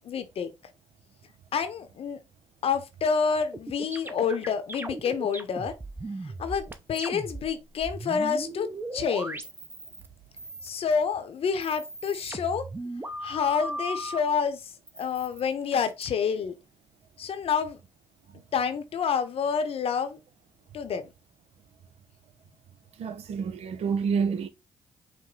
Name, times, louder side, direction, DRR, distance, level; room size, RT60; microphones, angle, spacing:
voice 1, 0.0-0.5 1.5-2.2 2.6-5.7 6.4-9.4 10.6-12.7 13.2-16.5 17.2-17.8 18.5-20.2 20.7-21.0, left 6 dB, 65° left, 0.7 m, -28 dB
sound 1, 3.5-10.1 10.4-11.0 11.5-14.2 14.9-16.1, right 2 dB, 20° right, 0.7 m, -37 dB
voice 2, 23.0-24.5, right 6 dB, 70° right, 0.7 m, -28 dB
5.0 x 2.1 x 3.7 m
supercardioid pair, 55°, 11 cm